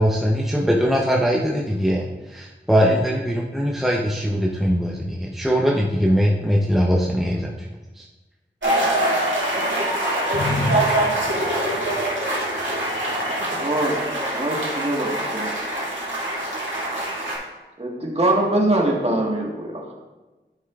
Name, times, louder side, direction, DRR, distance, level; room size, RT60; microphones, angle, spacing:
voice 1, 0.0-7.7 8.0-8.1, equal, ahead, -2 dB, 0.7 m, -21 dB
sound 1, 8.6-17.4, right 1 dB, 85° right, 2.2 m, -24 dB
voice 2, 10.3-12.8, left 1 dB, 60° left, 5 dB, 0.7 m, -29 dB
voice 3, 13.5-14.0 14.3-15.6 17.8-19.9, right 1 dB, 35° right, -2 dB, 1.5 m, -23 dB
11.5 x 5.5 x 2.4 m, 1.2 s
wide cardioid pair, 65°, 19 cm